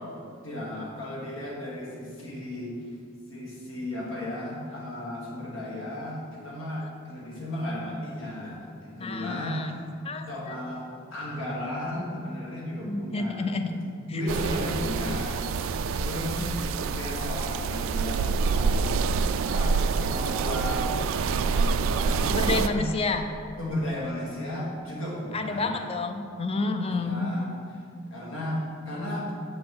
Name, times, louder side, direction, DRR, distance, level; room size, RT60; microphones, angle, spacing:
voice 1, 0.4-3.0 3.3-9.9 10.3-13.5 13.8-19.0 19.5-22.9 23.6-25.9 26.9-27.5 28.1-29.3, left 1 dB, 75° left, -4 dB, 1.8 m, -35 dB
voice 2, 8.9-9.7 10.0-10.6 12.8-13.7 16.4-16.6 22.3-23.2 25.3-27.3, left 3 dB, 30° left, 6 dB, 0.5 m, -30 dB
sound 1, 14.3-22.7, right 5 dB, 75° right, 0.3 m, -26 dB
7.5 x 4.1 x 6.0 m, 2.4 s
head